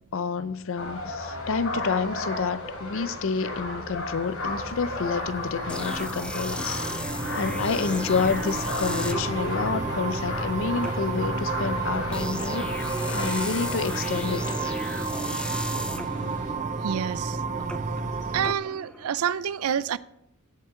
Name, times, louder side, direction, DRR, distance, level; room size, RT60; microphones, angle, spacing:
voice 1, 0.1-6.8 7.3-12.6 13.1-14.5, left 5 dB, 65° left, 0.6 m, -29 dB
sound 1, 0.8-16.5, left 2 dB, 80° left, 3.9 m, -35 dB
sound 2, 4.2-18.5, right 4 dB, 35° right, 0.6 m, -32 dB
sound 3, 5.7-19.4, equal, 5° left, 0.7 m, -36 dB
voice 2, 16.8-17.4 18.3-20.0, right 8 dB, 85° right, 0.4 m, -28 dB
16.5 x 7.4 x 3.7 m
head